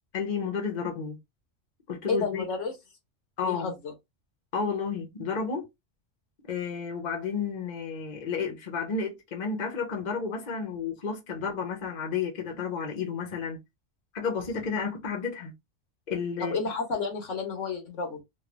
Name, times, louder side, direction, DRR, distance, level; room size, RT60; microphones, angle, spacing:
voice 1, 0.1-1.2 1.9-2.4 3.4-3.7 4.5-5.6 6.5-13.6 14.1-15.5 16.1-16.5, left 5 dB, 40° left, 1.0 m, -31 dB
voice 2, 2.1-2.7 3.4-3.9 16.4-18.2, left 4 dB, 75° left, 1.4 m, -31 dB
3.1 x 2.5 x 2.5 m
omnidirectional pair, 1.3 m